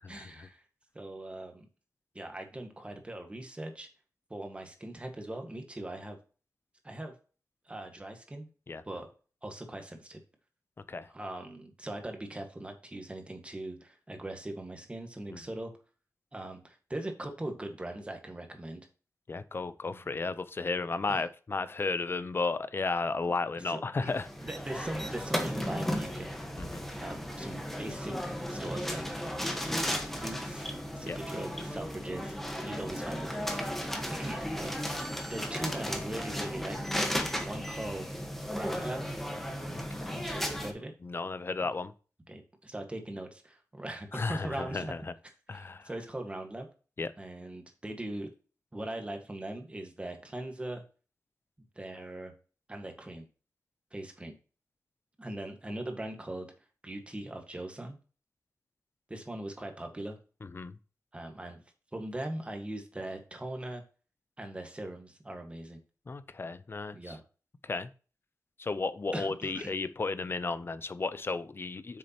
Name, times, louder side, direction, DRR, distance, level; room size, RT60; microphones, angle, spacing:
voice 1, 0.1-0.6 0.9-1.6 2.1-3.9 4.3-6.2 6.8-7.1 7.6-8.5 8.8-9.1 9.4-10.2 11.1-15.7 16.3-18.8 19.8-20.1 21.1-21.2 23.5-26.3 27.0-29.0 29.9-32.3 32.6-33.3 34.1-36.8 37.4-38.1 38.5-39.2 40.0-40.9 41.6-41.7 42.3-44.9 45.5-46.7 47.2-48.3 48.7-50.8 51.7-52.3 52.7-53.3 53.9-54.4 55.2-56.5 56.8-58.0 59.1-60.2 61.1-61.6 61.9-63.8 64.4-65.8 66.9-67.2 69.1-69.7, right 1 dB, 20° right, 1.5 m, -40 dB
voice 2, 19.3-24.3 26.6-26.8 31.1-31.2 39.8-40.2 41.0-41.9 44.1-45.0 45.5-45.9 47.0-47.1 60.5-60.7 66.1-67.2 67.6-67.9 68.6-72.0, left 3 dB, 40° left, 0.6 m, -34 dB
sound 1, 24.1-40.7, equal, 5° left, 1.2 m, -35 dB
8.3 x 6.4 x 2.9 m
wide cardioid pair, 145°, 6 cm